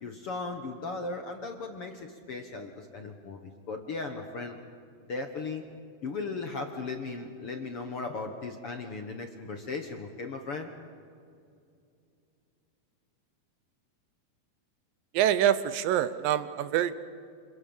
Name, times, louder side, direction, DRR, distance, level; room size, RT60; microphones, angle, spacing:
voice 1, 0.0-4.6 5.0-5.6 6.0-10.7, left 3 dB, 55° left, 5 dB, 1.6 m, -37 dB
voice 2, 15.1-17.0, right 11 dB, 75° right, 13 dB, 2.3 m, -25 dB
28.0 x 26.0 x 7.2 m, 2.4 s
omnidirectional pair, 4.3 m